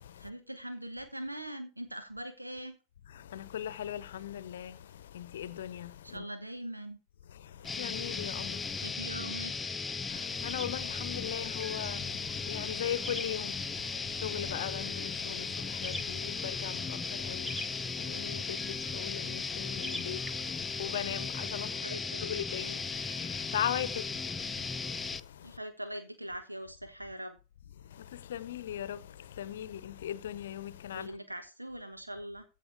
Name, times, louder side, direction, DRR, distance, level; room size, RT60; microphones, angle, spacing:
voice 1, 0.2-2.8 6.0-7.0 8.8-9.8 21.7-22.3 25.4-27.4 30.9-32.4, right 1 dB, 85° right, 1.2 m, -42 dB
voice 2, 3.1-6.2 7.3-8.8 10.1-21.9 22.2-25.6 27.8-31.1, left 10 dB, 60° left, 0.8 m, -39 dB
sound 1, 7.6-25.2, left 4 dB, 15° left, 0.5 m, -36 dB
sound 2, 10.1-21.6, left 1 dB, 5° right, 1.5 m, -48 dB
15.0 x 5.1 x 4.7 m
figure-of-eight pair, 90°, 0 cm